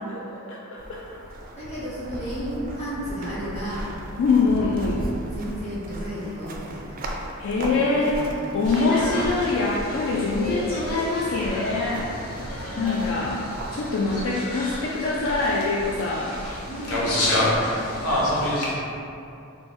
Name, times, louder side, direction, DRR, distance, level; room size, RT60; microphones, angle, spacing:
sound 1, 0.8-18.4, right 1 dB, 40° right, 0.3 m, -37 dB
voice 1, 1.6-3.9 4.3-4.6 5.3-6.9 7.5-8.7 12.6-13.2 16.6-17.1 17.5-18.4, equal, 30° left, -11 dB, 1.3 m, -34 dB
voice 2, 4.2-5.1 7.4-12.1 12.8-16.3, left 3 dB, 60° left, -5 dB, 0.3 m, -24 dB
sound 2, 8.7-18.7, left 1 dB, 85° left, 0.7 m, -29 dB
4.5 x 2.3 x 2.6 m, 2.7 s
head